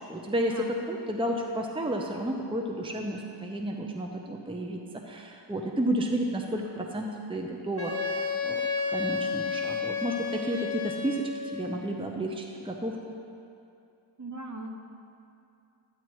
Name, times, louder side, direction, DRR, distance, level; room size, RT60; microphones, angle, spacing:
voice 1, 0.1-4.8 5.0-8.6 8.9-13.0, right 1 dB, 10° right, 1 dB, 0.8 m, -32 dB
Wind instrument woodwind instrument, 7.8-11.5, left 5 dB, 30° left, 1.3 m, -31 dB
voice 2, 14.2-14.8, right 1 dB, 35° right, 2 dB, 1.1 m, -38 dB
12.0 x 9.8 x 3.1 m, 2.6 s
cardioid pair, 50°, 49 cm